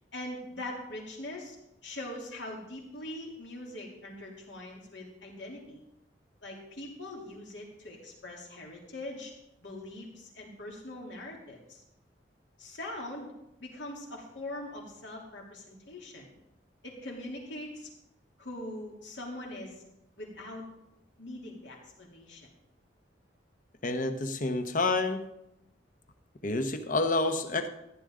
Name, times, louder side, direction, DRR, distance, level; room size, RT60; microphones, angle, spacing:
voice 1, 0.1-1.6 1.8-5.8 6.4-9.3 9.6-11.8 12.6-13.3 13.6-16.3 16.8-17.9 18.4-19.8 20.2-20.6 21.2-22.5, left 1 dB, 75° left, -1 dB, 3.0 m, -42 dB
voice 2, 23.8-25.3 26.4-27.7, left 2 dB, 45° left, 8 dB, 0.9 m, -29 dB
14.5 x 10.5 x 3.8 m, 0.86 s
head